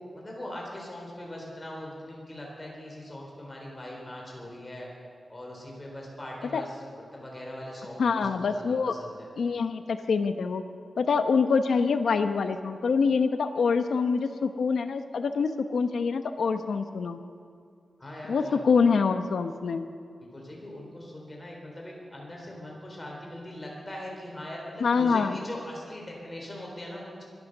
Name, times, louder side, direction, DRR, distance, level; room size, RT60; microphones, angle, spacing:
voice 1, 0.1-4.9 5.3-9.3 18.0-18.7 20.3-27.2, left 1 dB, 20° left, -2 dB, 4.0 m, -41 dB
voice 2, 8.0-8.9 9.4-10.6 11.0-17.2 18.3-19.9 24.8-25.4, left 5 dB, 85° left, 8 dB, 0.9 m, -25 dB
23.5 x 9.0 x 6.7 m, 2.3 s
wide cardioid pair, 160°, 0 cm